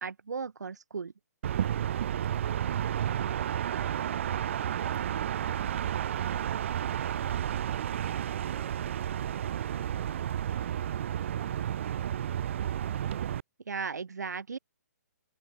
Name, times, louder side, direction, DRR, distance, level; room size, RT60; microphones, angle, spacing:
voice 1, 0.0-1.1 13.7-14.6, right 5 dB, 85° right, 1.2 m, -36 dB
sound 1, 1.4-13.4, right 10 dB, 45° right, 1.6 m, -31 dB
voice 2, 2.4-2.5, right 7 dB, 10° right, 6.3 m, -61 dB
hypercardioid pair, 155°, 9 cm